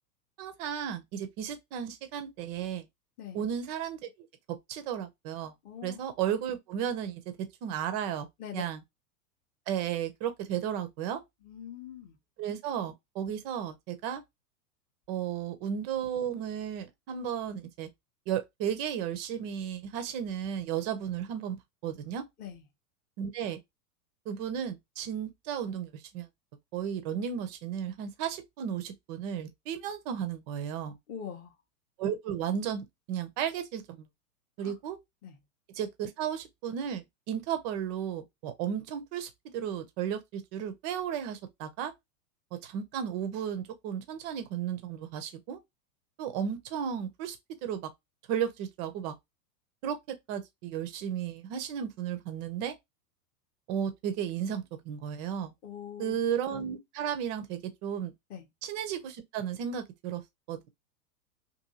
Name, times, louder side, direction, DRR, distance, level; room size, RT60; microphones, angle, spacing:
voice 1, 0.4-2.9 3.3-4.1 4.5-5.5 5.8-8.3 8.5-8.8 9.7-11.2 12.4-14.2 15.1-17.9 18.3-21.6 21.8-22.2 23.2-23.6 24.3-26.3 26.7-31.0 32.0-34.1 34.6-35.0 35.7-41.9 42.5-45.6 46.2-47.9 48.3-49.1 49.8-52.8 53.7-55.5 56.0-58.1 58.6-60.2 60.5-60.7, right 9 dB, 30° right, 0.4 m, -34 dB
voice 2, 5.6-6.0 8.4-8.6 11.4-12.1 22.4-22.6 31.1-31.5 34.6-34.7 35.2-35.3 55.6-56.2 58.3-58.5, left 8 dB, 20° left, 0.5 m, -42 dB
2.7 x 2.6 x 2.6 m
hypercardioid pair, 105°, 47 cm